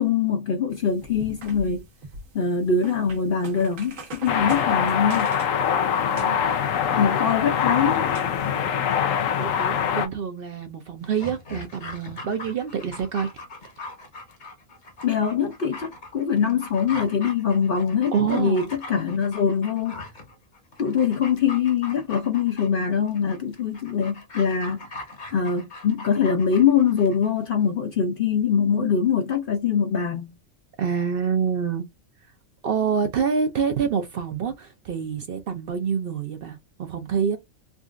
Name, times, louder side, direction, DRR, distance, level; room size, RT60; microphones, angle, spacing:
voice 1, 0.0-1.8 2.3-5.3 7.0-8.1 15.0-20.0 20.8-24.8 25.3-30.3, left 7 dB, 55° left, 0.6 m, -23 dB
sound 1, 0.7-8.7, right 2 dB, 80° right, 1.3 m, -43 dB
sound 2, 4.3-10.1, left 8 dB, 90° left, 1.0 m, -23 dB
voice 2, 5.8-6.5 7.2-7.4 8.4-8.9 9.4-13.3 18.1-18.6 28.8-28.9 30.8-31.8 32.6-37.4, right 6 dB, 60° right, 0.6 m, -27 dB
Dog, 11.0-27.3 27.6-27.7, left 3 dB, 40° left, 1.0 m, -40 dB
3.7 x 2.3 x 2.4 m
omnidirectional pair, 1.3 m